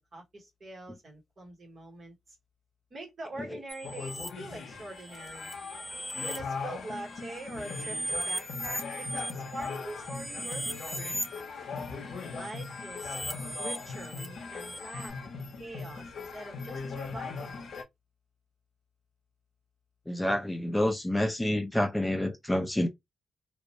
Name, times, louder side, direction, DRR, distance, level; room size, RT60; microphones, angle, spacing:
voice 1, 0.1-2.1 2.9-5.5 6.1-11.2 12.1-13.2 13.6-15.1 15.6-17.6, right 2 dB, 45° right, 1.1 m, -44 dB
sound 1, 3.7-4.3 5.0-6.4 6.9-11.4 12.3-15.1, equal, 15° right, 1.0 m, -38 dB
sound 2, 3.8-17.8, left 4 dB, 70° left, 0.6 m, -40 dB
voice 2, 20.1-22.9, left 1 dB, 10° left, 0.4 m, -28 dB
2.3 x 2.0 x 2.7 m
cardioid pair, 95°, 0 cm